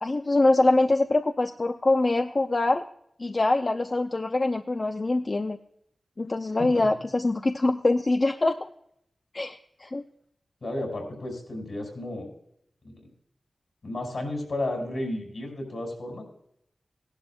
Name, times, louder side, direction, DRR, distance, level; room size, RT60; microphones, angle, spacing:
voice 1, 0.0-2.8 3.2-5.6 6.2-8.7 9.3-10.0, left 2 dB, 40° left, 6 dB, 0.6 m, -24 dB
voice 2, 10.6-12.3 12.8-13.0 13.8-16.2, left 1 dB, 70° left, 1 dB, 5.3 m, -33 dB
17.0 x 11.5 x 2.3 m, 0.70 s
wide cardioid pair, 65°, 0 cm